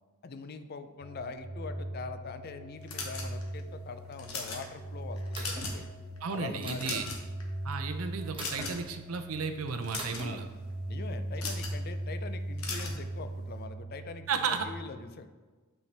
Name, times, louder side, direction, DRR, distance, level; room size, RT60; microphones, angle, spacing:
voice 1, 0.2-5.8 6.3-7.0 10.0-10.4 10.9-15.3, left 4 dB, 45° left, 10 dB, 0.4 m, -43 dB
sound 1, 1.0-14.6, right 1 dB, 5° left, 0.8 m, -40 dB
sound 2, 2.9-3.6 4.1-4.6 5.2-5.8 6.2-6.3 6.7-7.4 8.4-8.9 9.7-10.3 11.4-11.8 12.6-13.0, left 4 dB, 75° left, 1.1 m, -38 dB
sound 3, 5.3-5.7 6.6-7.0 8.3-8.7 10.0-10.3, right 2 dB, 25° right, 1.1 m, -41 dB
voice 2, 6.2-7.1 7.6-10.5 14.3-14.7, right 5 dB, 80° right, 8 dB, 0.6 m, -33 dB
8.4 x 4.5 x 3.3 m, 1.3 s
head